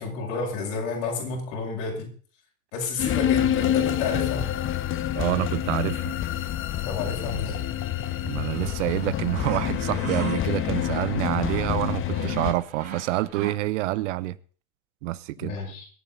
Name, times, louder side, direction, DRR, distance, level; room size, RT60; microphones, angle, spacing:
voice 1, 0.0-2.1 2.7-4.5 6.9-7.6 15.4-15.9, left 4 dB, 65° left, 7.0 m, -31 dB
sound 1, 3.0-12.5, left 11 dB, 30° left, 0.9 m, -27 dB
voice 2, 5.1-6.1 8.2-14.4 15.0-15.6, right 17 dB, 60° right, 0.9 m, -27 dB
sound 2, 8.0-13.5, right 5 dB, 80° right, 6.5 m, -39 dB
24.5 x 8.6 x 4.0 m
figure-of-eight pair, 80°, 41 cm